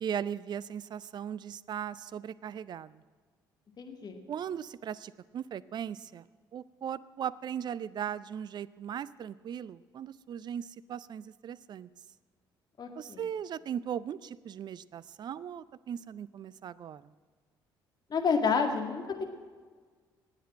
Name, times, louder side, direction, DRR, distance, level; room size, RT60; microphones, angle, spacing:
voice 1, 0.0-3.0 4.3-6.2 6.5-11.9 13.0-17.0, right 8 dB, 40° right, 20 dB, 0.5 m, -38 dB
voice 2, 3.8-4.2 12.8-13.3 18.1-19.3, left 5 dB, 35° left, 4 dB, 2.1 m, -29 dB
19.0 x 8.0 x 7.6 m, 1.5 s
figure-of-eight pair, 50°, 11 cm